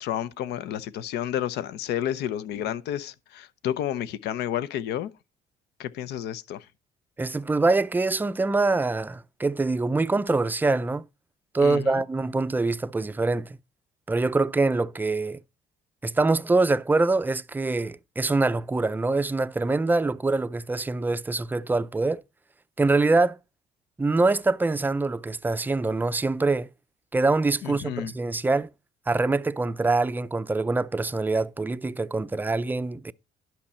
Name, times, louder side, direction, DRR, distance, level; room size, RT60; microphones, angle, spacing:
voice 1, 0.0-5.1 5.8-6.7 11.6-12.0 27.6-28.1, left 11 dB, 80° left, 0.8 m, -31 dB
voice 2, 7.2-11.0 11.5-13.5 14.1-15.4 16.0-22.2 22.8-23.4 24.0-26.7 27.1-28.7 29.1-33.1, right 3 dB, 10° right, 0.4 m, -24 dB
11.0 x 5.9 x 4.3 m
cardioid pair, 110°, 17 cm